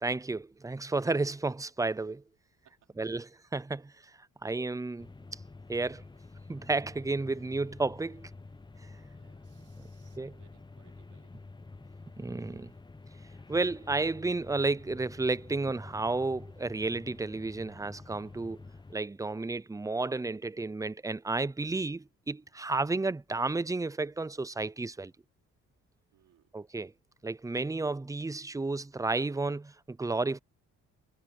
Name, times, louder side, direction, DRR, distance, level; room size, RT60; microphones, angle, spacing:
voice 1, 0.0-2.2 3.0-3.9 4.4-5.1 5.7-6.0 6.5-8.3 9.5-9.9 10.2-10.3 12.2-12.7 13.5-18.6 18.9-25.1 26.5-26.9 27.2-30.4, right 3 dB, 10° right, 0.6 m, -32 dB
sound 1, 5.0-19.0, left 3 dB, 15° left, 1.0 m, -49 dB
voice 2, 8.9-11.3 26.1-26.5, right 11 dB, 80° right, 4.6 m, -67 dB
cardioid pair, 90°, 30 cm